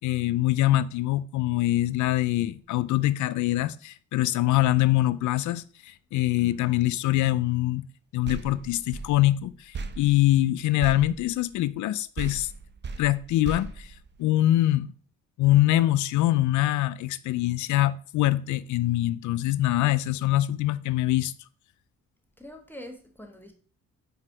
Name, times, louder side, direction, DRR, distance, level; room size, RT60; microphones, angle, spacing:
voice 1, 0.0-7.8 8.1-12.5 13.0-13.9 14.2-14.9 15.4-21.3, left 15 dB, 75° left, 0.5 m, -24 dB
voice 2, 6.4-6.8 22.4-23.5, left 1 dB, 5° left, 1.1 m, -44 dB
sound 1, 8.2-11.9 12.2-14.6, right 4 dB, 35° right, 0.7 m, -39 dB
4.7 x 4.4 x 4.9 m
cardioid pair, 90°, 30 cm